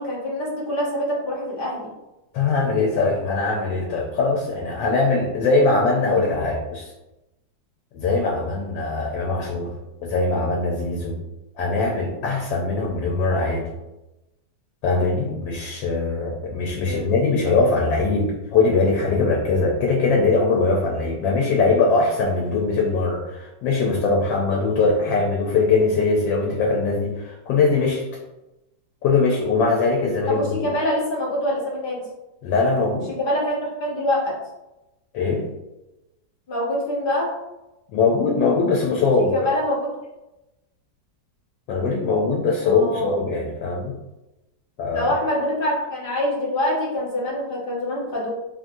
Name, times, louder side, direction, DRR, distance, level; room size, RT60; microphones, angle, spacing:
voice 1, 0.0-1.9 16.8-17.1 30.3-32.0 33.2-34.4 36.5-37.3 39.2-39.9 42.6-43.2 44.9-48.3, left 1 dB, 55° left, -4 dB, 0.6 m, -25 dB
voice 2, 2.3-6.9 7.9-9.7 10.0-11.2 11.6-13.7 14.8-28.0 29.0-30.6 32.4-33.1 35.1-35.5 37.9-39.3 41.7-44.0 44.8-45.1, left 3 dB, 85° left, -1 dB, 1.3 m, -21 dB
2.9 x 2.6 x 2.5 m, 0.98 s
omnidirectional pair, 2.0 m